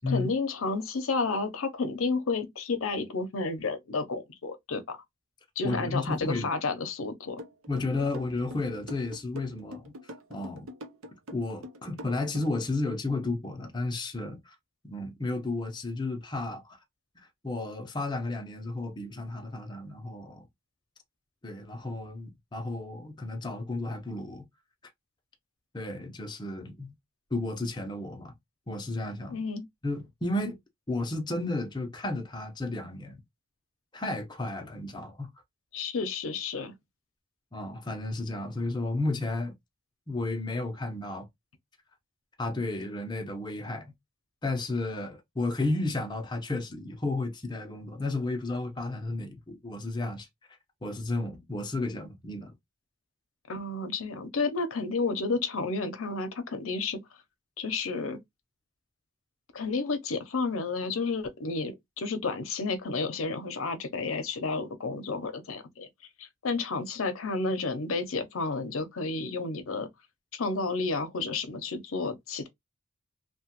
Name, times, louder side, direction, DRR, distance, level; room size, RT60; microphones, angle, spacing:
voice 1, 0.1-5.0 5.6-7.4 29.3-29.7 35.7-36.7 53.5-57.0 57.6-58.2 59.5-65.9 66.2-69.9 70.3-72.5, left 3 dB, 75° left, 0.6 m, -31 dB
voice 2, 5.6-6.5 7.7-10.7 11.3-14.5 14.8-16.8 17.2-20.5 21.4-24.4 25.7-26.9 27.3-28.3 28.7-29.4 29.8-30.6 30.9-33.2 33.9-35.3 37.5-39.5 40.1-41.3 42.4-43.9 44.4-50.3 50.8-52.5, left 2 dB, 20° left, 0.6 m, -33 dB
sound 1, 7.4-12.7, left 1 dB, 80° right, 0.6 m, -44 dB
2.9 x 2.2 x 2.8 m
head